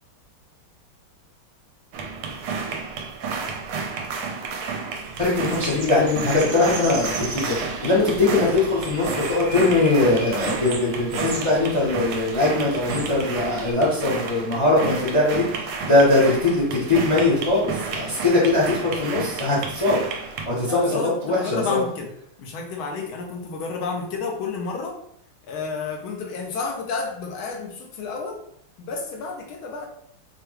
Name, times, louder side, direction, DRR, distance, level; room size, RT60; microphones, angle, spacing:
sound 1, 1.9-20.5, right 5 dB, 85° right, 1.5 m, -32 dB
sound 2, 5.0-13.7, right 3 dB, 55° right, 1.2 m, -37 dB
voice 1, 5.2-21.8, left 2 dB, 30° left, -5 dB, 0.5 m, -21 dB
voice 2, 20.6-22.1 22.4-25.0 25.5-28.4 28.8-29.9, left 4 dB, 75° left, 1 dB, 1.4 m, -31 dB
4.9 x 2.3 x 3.0 m, 0.69 s
omnidirectional pair, 2.3 m